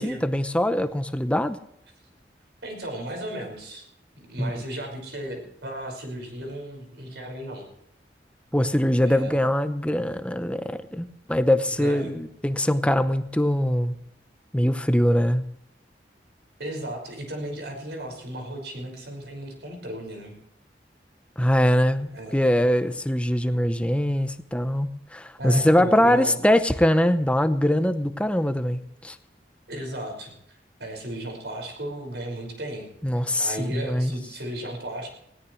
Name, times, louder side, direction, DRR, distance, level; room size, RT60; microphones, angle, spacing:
voice 1, 0.0-1.6 4.4-4.5 8.5-14.0 14.5-15.4 21.4-29.2 33.0-34.1, equal, 5° left, 10 dB, 0.7 m, -22 dB
voice 2, 2.6-3.8 4.1-7.7 9.1-9.5 11.8-12.2 16.6-20.4 22.1-22.4 25.4-26.4 29.7-32.9 33.2-35.1, right 1 dB, 75° right, 2 dB, 5.5 m, -35 dB
19.5 x 17.5 x 3.2 m, 0.74 s
head